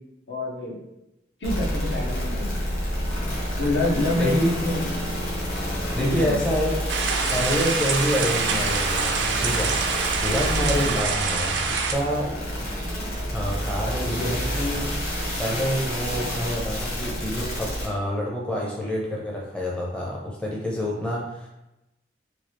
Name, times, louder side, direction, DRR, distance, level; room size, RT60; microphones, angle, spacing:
voice 1, 0.3-0.8 1.4-2.8 3.6-4.8 5.9-6.4, left 1 dB, 75° left, -2 dB, 0.8 m, -26 dB
sound 1, 1.4-17.9, equal, 50° left, 0.9 m, -29 dB
voice 2, 5.9-6.8 7.3-12.4 13.3-21.5, equal, 5° left, -4 dB, 0.5 m, -27 dB
sound 2, 6.9-11.9, right 5 dB, 80° right, 0.4 m, -26 dB
3.0 x 2.3 x 3.0 m, 0.92 s
head